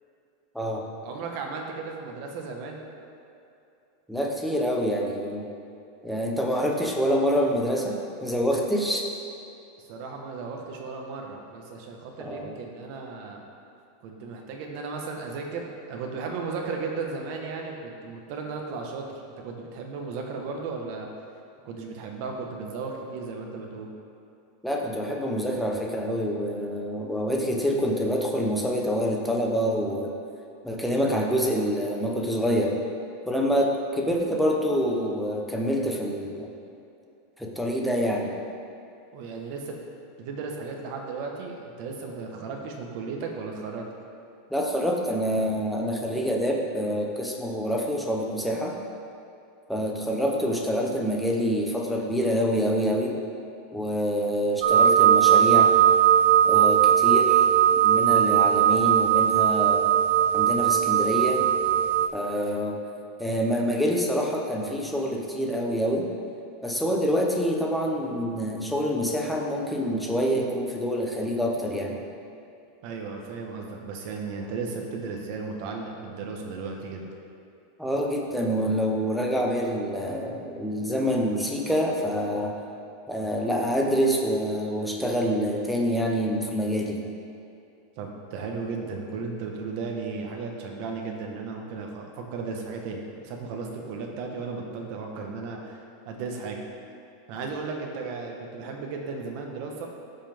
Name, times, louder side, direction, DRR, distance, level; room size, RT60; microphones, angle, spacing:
voice 1, 1.0-2.8 9.9-13.4 14.0-21.1 21.6-23.9 39.1-39.8 40.2-43.9 72.8-77.0 88.0-95.8 96.1-96.6 97.3-99.9, right 4 dB, 45° right, 1 dB, 1.2 m, -35 dB
voice 2, 4.1-5.5 6.0-9.1 12.2-12.5 24.6-30.1 30.6-32.8 33.3-36.5 37.4-38.3 44.5-48.8 49.7-53.2 53.7-55.7 56.4-57.5 57.8-59.8 60.3-61.5 62.1-62.8 63.2-66.1 66.6-72.0 77.8-82.5 83.1-87.0, equal, ahead, -1 dB, 0.7 m, -26 dB
sound 1, 54.6-62.1, right 10 dB, 70° right, 0.6 m, -19 dB
14.5 x 5.8 x 3.5 m, 2.6 s
supercardioid pair, 175°, 0 cm